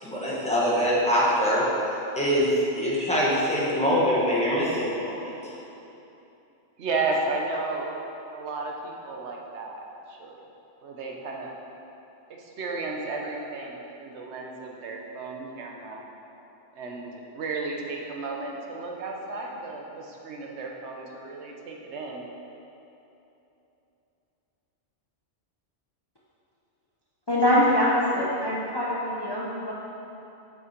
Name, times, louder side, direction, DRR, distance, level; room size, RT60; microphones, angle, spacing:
voice 1, 0.0-1.6 2.1-5.4, equal, 5° left, -8 dB, 1.4 m, -24 dB
voice 2, 6.8-8.0 8.3-10.4 10.8-11.6 12.3-16.0 16.7-22.3, right 3 dB, 65° right, -1 dB, 1.2 m, -33 dB
voice 3, 27.3-29.7, left 1 dB, 25° left, -6 dB, 0.7 m, -23 dB
6.5 x 6.2 x 4.5 m, 3.0 s
omnidirectional pair, 1.2 m